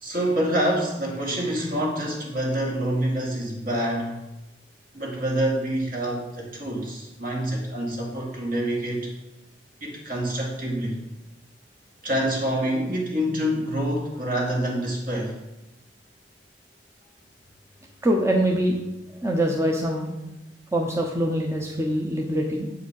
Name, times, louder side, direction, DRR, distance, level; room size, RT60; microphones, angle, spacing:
voice 1, 0.0-4.2 4.9-9.1 9.8-11.0 12.0-15.3, right 1 dB, 50° right, -1 dB, 2.3 m, -26 dB
voice 2, 18.0-18.8 19.1-20.1 20.7-22.7, right 1 dB, 15° right, 1 dB, 0.8 m, -24 dB
8.1 x 5.0 x 6.4 m, 0.97 s
head